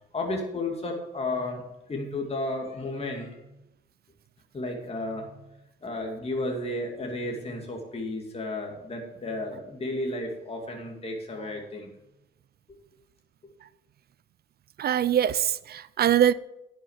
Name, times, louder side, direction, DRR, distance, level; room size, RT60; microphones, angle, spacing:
voice 1, 0.1-1.6 1.9-3.5 4.5-5.4 5.8-11.9, left 2 dB, 30° left, 2.4 m, -33 dB
voice 2, 14.8-16.3, right 10 dB, 50° right, 0.4 m, -23 dB
10.5 x 6.6 x 7.2 m
cardioid pair, 90°, 20 cm